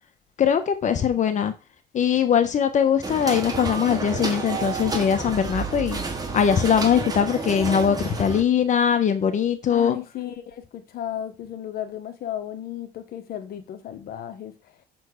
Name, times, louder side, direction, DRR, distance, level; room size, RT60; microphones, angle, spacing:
voice 1, 0.4-1.5 1.9-6.0 6.3-10.0, left 8 dB, 45° left, 1.1 m, -21 dB
sound 1, 3.0-8.4, right 3 dB, 20° right, 2.1 m, -30 dB
voice 2, 9.7-14.8, left 11 dB, 65° left, 1.2 m, -34 dB
6.8 x 4.4 x 6.5 m
cardioid pair, 110°, 17 cm